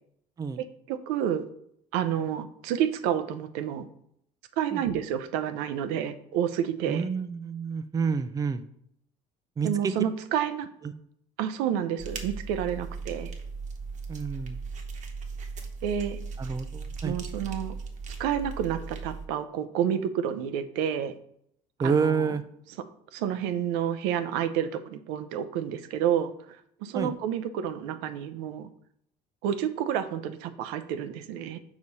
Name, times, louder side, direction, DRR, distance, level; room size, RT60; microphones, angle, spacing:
voice 1, 0.6-1.5 1.9-3.9 4.6-7.0 9.6-10.7 11.4-13.3 15.8-16.2 17.0-17.8 18.2-21.1 21.9-22.3 23.1-26.3 26.8-28.7 29.4-31.6, right 9 dB, 85° right, 10 dB, 0.6 m, -29 dB
voice 2, 6.9-8.6 9.6-9.9 10.8-10.9 14.1-14.6 16.4-17.1 21.8-22.4 26.9-27.1, right 5 dB, 20° right, 10 dB, 0.4 m, -28 dB
sound 1, 12.0-19.3, right 4 dB, 45° right, 1.1 m, -38 dB
4.9 x 4.2 x 5.4 m, 0.71 s
supercardioid pair, 105°, 17 cm